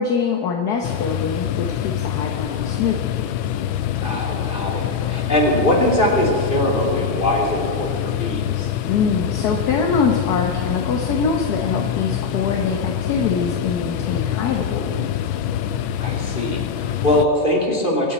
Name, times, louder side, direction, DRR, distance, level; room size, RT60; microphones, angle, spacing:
voice 1, 0.0-3.0 8.9-15.0, left 5 dB, 55° left, 2 dB, 1.3 m, -23 dB
sound 1, 0.8-17.3, left 11 dB, 75° left, 1.3 m, -25 dB
voice 2, 4.0-8.7 16.0-18.1, left 1 dB, 25° left, -2 dB, 2.8 m, -21 dB
24.0 x 9.8 x 4.3 m, 2.1 s
omnidirectional pair, 2.3 m